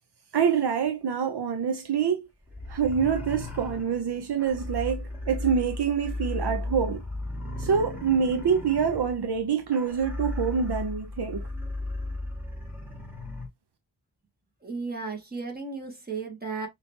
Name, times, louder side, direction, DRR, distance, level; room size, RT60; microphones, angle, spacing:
voice 1, 0.3-2.3 2.7-7.0 7.6-11.5, right 7 dB, 75° right, 0.7 m, -26 dB
sound 1, 2.4-13.5, left 1 dB, 5° right, 2.7 m, -35 dB
voice 2, 14.6-16.7, right 4 dB, 25° right, 1.8 m, -34 dB
5.7 x 3.0 x 2.8 m
wide cardioid pair, 115°, 40 cm